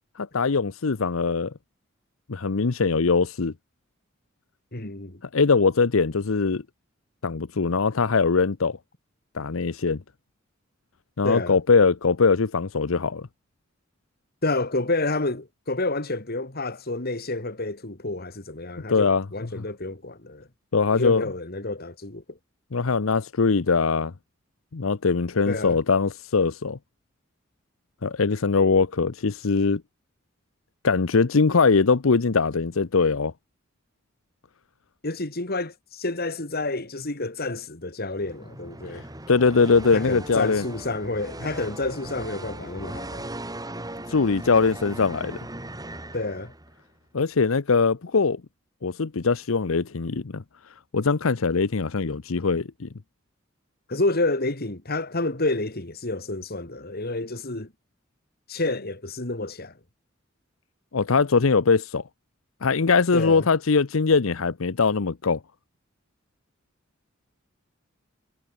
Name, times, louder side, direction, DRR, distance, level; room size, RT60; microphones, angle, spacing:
voice 1, 0.2-1.5 2.3-3.5 5.3-6.6 7.2-8.8 9.3-10.0 11.2-13.3 18.9-19.2 19.6-19.7 20.7-21.2 22.7-24.1 24.7-26.8 28.0-29.8 30.8-33.3 39.3-40.6 44.1-45.4 47.1-48.4 48.8-50.4 50.9-52.9 60.9-62.0 62.6-65.4, left 4 dB, 85° left, 0.8 m, -22 dB
voice 2, 4.7-5.2 11.2-11.6 14.4-20.5 20.9-22.4 25.5-25.8 35.0-39.0 39.9-43.3 46.1-46.5 53.9-57.7 58.5-59.7 63.1-63.5, left 2 dB, 50° left, 2.7 m, -29 dB
sound 1, 38.2-46.8, right 1 dB, 20° right, 8.0 m, -38 dB
head